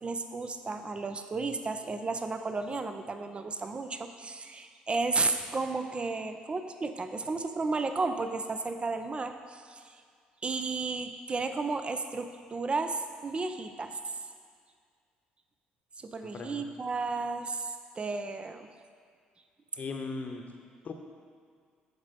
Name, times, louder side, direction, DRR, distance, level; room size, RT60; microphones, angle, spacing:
voice 1, 0.0-9.8 10.4-14.0 16.0-18.7, right 3 dB, 25° right, 8 dB, 0.7 m, -33 dB
voice 2, 16.2-16.7 19.8-20.4 20.8-20.9, left 4 dB, 40° left, 4 dB, 1.0 m, -38 dB
14.0 x 5.1 x 4.2 m, 2.1 s
figure-of-eight pair, 50°, 4 cm